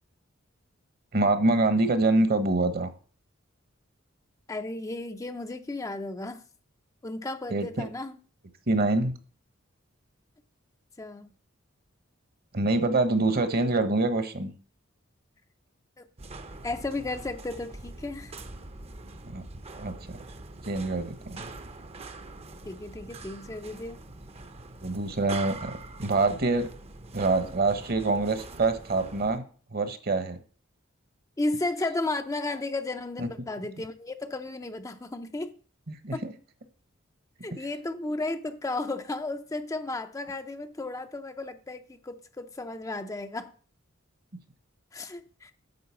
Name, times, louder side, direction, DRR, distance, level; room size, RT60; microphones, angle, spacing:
voice 1, 1.1-2.9 7.5-7.9 8.7-9.1 12.5-14.5 19.3-19.4 19.8-20.2 20.6-21.5 24.8-26.7 27.1-29.4 29.7-30.4 33.2-33.3 35.9-36.3, right 2 dB, 50° right, 1.1 m, -25 dB
voice 2, 4.5-6.4 7.0-8.2 11.0-11.3 16.0-16.1 16.6-18.4 22.6-24.0 31.4-35.6 36.1-36.3 37.4-43.5 44.9-45.5, left 2 dB, 15° left, 0.5 m, -34 dB
sound 1, 16.2-29.4, right 2 dB, 30° right, 0.7 m, -43 dB
9.4 x 3.9 x 7.0 m
head